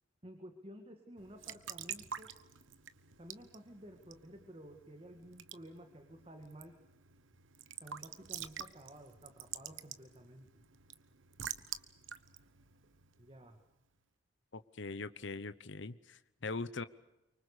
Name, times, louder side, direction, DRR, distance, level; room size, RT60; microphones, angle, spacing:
voice 1, 0.2-2.3 3.2-6.8 7.8-10.6 13.2-13.6, right 1 dB, 30° right, 5 dB, 2.0 m, -53 dB
Raindrop / Drip / Trickle dribble, 1.2-13.6, right 9 dB, 80° right, 1.1 m, -48 dB
voice 2, 14.5-16.8, left 3 dB, 65° left, 13 dB, 1.0 m, -41 dB
25.0 x 24.5 x 6.7 m, 0.96 s
head